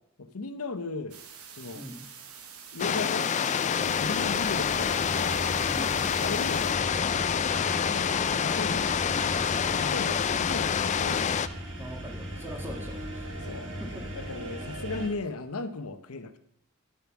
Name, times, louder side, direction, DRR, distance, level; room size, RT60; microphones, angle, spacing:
voice 1, 0.2-1.2 1.6-1.8 2.7-3.3 3.7-5.4 6.2-6.7 7.8-8.1 8.4-8.9 9.7-11.5 13.4-13.7 14.2-16.3, left 3 dB, 75° left, 10 dB, 0.9 m, -36 dB
sound 1, 1.1-6.7, right 7 dB, 75° right, 1.3 m, -47 dB
sound 2, 2.8-11.5, left 7 dB, 30° left, 0.3 m, -27 dB
sound 3, 3.8-15.1, equal, 60° right, 2.2 m, -38 dB
voice 2, 5.7-6.0 11.7-13.3 13.8-14.1, equal, 10° right, 1 dB, 1.9 m, -42 dB
10.5 x 7.0 x 6.0 m, 0.72 s
head